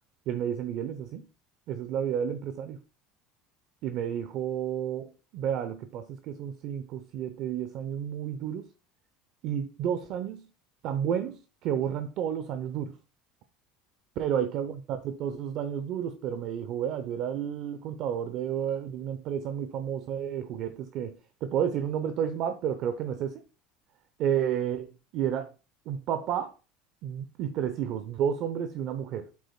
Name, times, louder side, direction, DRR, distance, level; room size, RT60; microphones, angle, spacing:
voice 1, 0.3-1.3 1.7-2.8 3.8-8.7 9.4-10.5 10.8-13.0 14.2-23.4 24.2-25.5 25.9-26.5 27.0-29.3, right 9 dB, 55° right, 0.6 m, -31 dB
8.4 x 8.1 x 2.2 m
cardioid pair, 140°, 0 cm